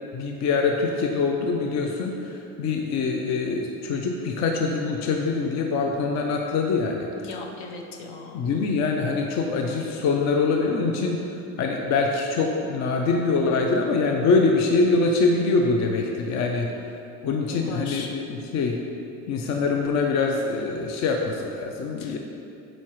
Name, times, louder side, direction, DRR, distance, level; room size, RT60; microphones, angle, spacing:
voice 1, 0.1-7.1 8.3-16.7 17.2-18.8 19.3-22.2, left 4 dB, 40° left, 2 dB, 0.6 m, -24 dB
voice 2, 7.2-8.5 17.5-18.1 22.0-22.2, left 4 dB, 65° left, 2 dB, 0.9 m, -38 dB
7.1 x 4.4 x 3.0 m, 2.7 s
hypercardioid pair, 80°, 42 cm